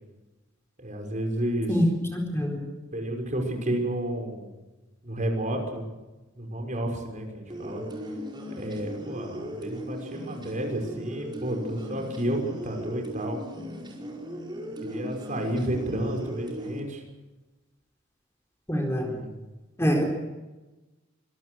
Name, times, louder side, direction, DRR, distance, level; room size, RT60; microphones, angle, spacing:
voice 1, 0.8-1.7 2.9-4.5 5.0-5.9 6.4-7.8 8.6-13.4 14.8-17.0 19.0-19.4, right 1 dB, 40° right, 2 dB, 5.8 m, -31 dB
voice 2, 2.1-2.6 18.7-19.1 19.8-20.0, equal, 15° left, 1 dB, 4.2 m, -24 dB
sound 1, 7.5-16.8, equal, 25° right, 5.1 m, -38 dB
25.5 x 21.5 x 6.4 m, 1.1 s
head